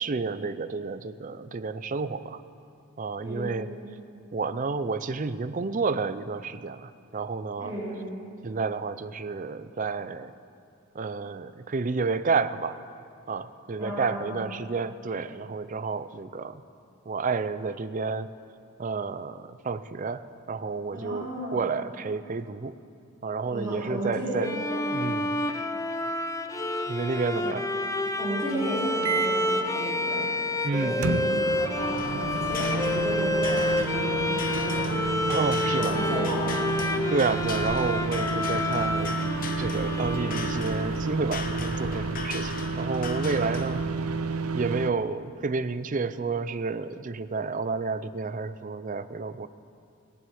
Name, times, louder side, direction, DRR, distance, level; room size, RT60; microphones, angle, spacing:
voice 1, 0.0-2.4 3.0-3.7 4.3-7.7 8.4-10.3 10.9-12.8 13.3-16.6 17.1-18.3 18.8-22.8 23.2-24.5 24.9-25.4 26.9-27.6 30.6-31.2 35.3-36.0 37.1-39.2 39.6-43.9 44.5-49.5, right 4 dB, 35° right, 13 dB, 0.4 m, -30 dB
voice 2, 3.2-3.6 7.6-8.0 13.8-14.4 20.9-21.7 23.5-24.9 27.4-27.6 28.2-30.3 30.7-34.9 35.7-36.9, right 1 dB, 15° right, -9 dB, 3.8 m, -33 dB
Bowed string instrument, 24.4-41.0, left 2 dB, 15° left, 0.5 m, -29 dB
sound 1, 29.0-29.5 31.0-44.9, right 4 dB, 85° right, 0.7 m, -31 dB
sound 2, 31.9-43.9, left 4 dB, 40° left, 0.8 m, -38 dB
17.5 x 7.9 x 9.3 m, 2.6 s
head